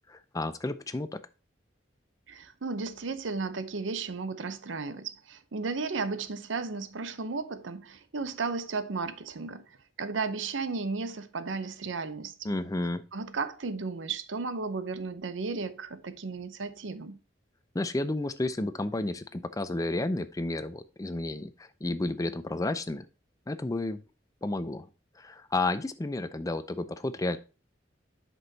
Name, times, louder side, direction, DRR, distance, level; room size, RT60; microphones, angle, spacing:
voice 1, 0.1-1.1 12.4-13.0 17.7-23.1 23.5-24.0 24.4-24.9 25.2-27.4, left 2 dB, 20° left, 0.5 m, -31 dB
voice 2, 2.3-12.5 13.1-17.2, right 4 dB, 90° right, 0.7 m, -34 dB
8.1 x 6.1 x 2.8 m
head